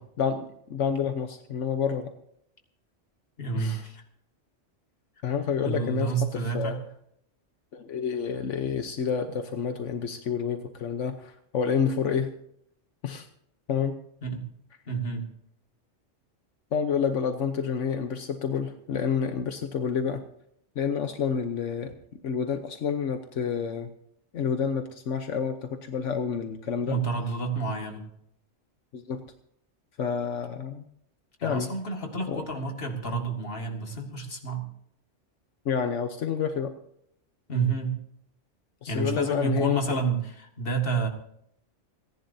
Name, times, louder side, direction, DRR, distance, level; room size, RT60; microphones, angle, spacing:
voice 1, 0.2-2.1 3.6-3.8 5.2-6.8 7.7-12.3 13.0-13.3 13.7-14.0 16.7-20.2 20.8-21.9 22.2-23.9 24.3-27.0 28.9-29.2 30.0-30.8 31.4-31.7 32.3-32.4 35.6-36.7 38.8-40.0, left 7 dB, 80° left, 6 dB, 1.3 m, -29 dB
voice 2, 3.4-4.0 5.6-6.8 14.2-14.4 14.9-15.2 26.9-28.0 31.4-34.7 37.5-38.0 38.9-41.1, right 4 dB, 50° left, 3 dB, 2.3 m, -29 dB
30.0 x 11.0 x 2.8 m, 0.72 s
omnidirectional pair, 1.2 m